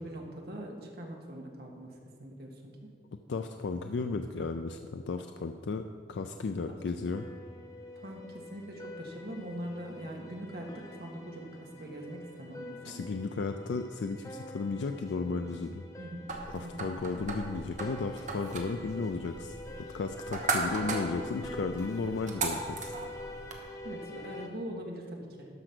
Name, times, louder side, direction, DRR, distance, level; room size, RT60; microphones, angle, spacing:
voice 1, 0.0-2.9 6.7-6.8 7.9-13.1 16.0-16.3 16.6-16.8 23.8-25.5, right 1 dB, 60° right, 0 dB, 1.5 m, -42 dB
voice 2, 3.3-7.3 12.8-15.8 16.5-19.5 19.9-22.9, left 4 dB, 85° left, 7 dB, 0.4 m, -34 dB
sound 1, 7.1-24.5, left 1 dB, 20° left, 0.8 m, -46 dB
sound 2, 16.3-23.6, right 3 dB, 45° right, 1.1 m, -37 dB
12.5 x 5.0 x 6.1 m, 2.1 s
head